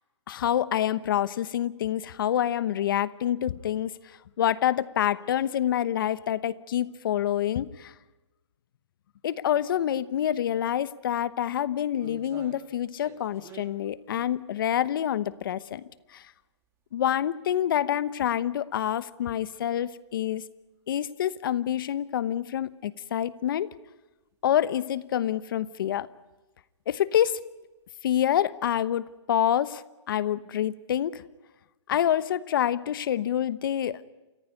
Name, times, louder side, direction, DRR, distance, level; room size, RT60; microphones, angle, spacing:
voice 1, 0.3-3.9 4.4-7.9 9.2-15.8 16.1-16.2 16.9-20.4 20.9-23.7 24.4-26.1 26.9-27.4 28.0-31.2 31.9-34.0, left 10 dB, 50° left, 17 dB, 1.0 m, -27 dB
sound 1, 10.6-10.7 11.2-16.2 16.6-16.7 17.5-17.6 17.9-18.0 19.0-19.1 19.4-19.5 20.0-20.2 20.5-20.6 22.7-22.8 24.1-24.4 24.8-25.2 25.6-25.8 26.1-26.2 27.3-27.5 28.1-28.8 29.1-29.2, right 5 dB, 15° right, 1.9 m, -49 dB
29.0 x 15.5 x 9.5 m, 1.1 s
hypercardioid pair, 155°, 15 cm